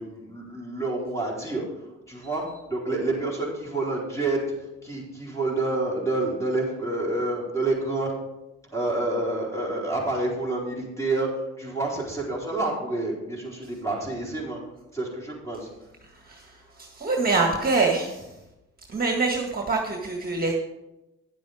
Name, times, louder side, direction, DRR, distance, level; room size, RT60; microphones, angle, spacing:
voice 1, 0.0-1.7 2.1-2.4 2.7-4.4 4.8-8.1 8.7-11.3 11.6-14.6 14.9-15.7, right 2 dB, 10° left, -4 dB, 4.4 m, -28 dB
voice 2, 16.8-18.2 18.9-20.5, right 3 dB, 30° right, 1 dB, 1.8 m, -25 dB
10.5 x 7.8 x 5.0 m, 0.94 s
cardioid pair, 90°, 30 cm